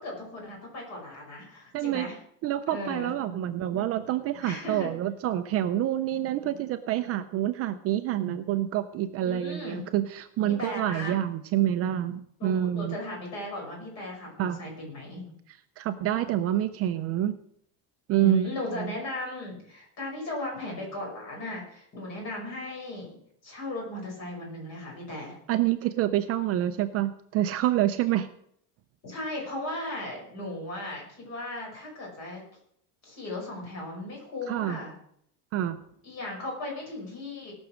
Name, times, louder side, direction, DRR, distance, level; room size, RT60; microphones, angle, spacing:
voice 1, 0.0-2.2 2.7-3.1 4.4-4.9 9.2-9.8 10.4-11.2 12.4-15.3 18.2-23.2 23.4-25.4 29.0-32.4 33.0-34.9 36.0-37.5, left 2 dB, 40° left, -1 dB, 5.6 m, -36 dB
voice 2, 1.7-2.1 2.4-13.0 14.4-14.6 15.5-17.4 18.1-18.5 18.7-18.9 25.5-28.3 34.5-34.8 35.5-35.8, right 12 dB, 35° right, 9 dB, 0.5 m, -27 dB
18.0 x 6.2 x 6.2 m, 0.69 s
cardioid pair, 175°, 41 cm